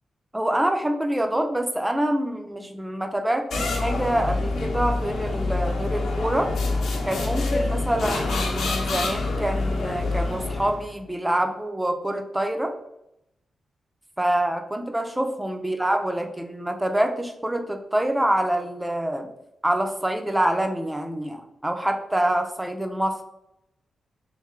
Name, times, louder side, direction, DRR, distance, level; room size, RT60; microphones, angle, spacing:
voice 1, 0.3-6.5 7.1-12.7 14.2-19.3 19.6-23.2, right 1 dB, 10° right, 5 dB, 0.4 m, -26 dB
sound 1, 3.5-10.9, left 3 dB, 85° left, 0.8 m, -26 dB
3.6 x 3.1 x 3.6 m, 0.84 s
wide cardioid pair, 145°, 0 cm